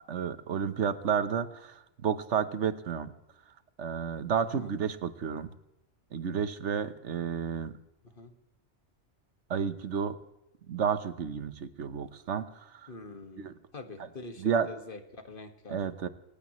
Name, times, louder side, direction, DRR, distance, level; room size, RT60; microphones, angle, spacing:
voice 1, 0.1-3.1 3.8-5.5 6.1-7.8 9.5-10.2 10.7-12.9 13.4-13.5 14.4-14.7 15.7-16.1, right 7 dB, 80° right, 12 dB, 1.3 m, -31 dB
voice 2, 12.9-15.8, left 3 dB, 50° left, 6 dB, 1.9 m, -45 dB
27.5 x 15.5 x 3.1 m, 0.87 s
omnidirectional pair, 1.2 m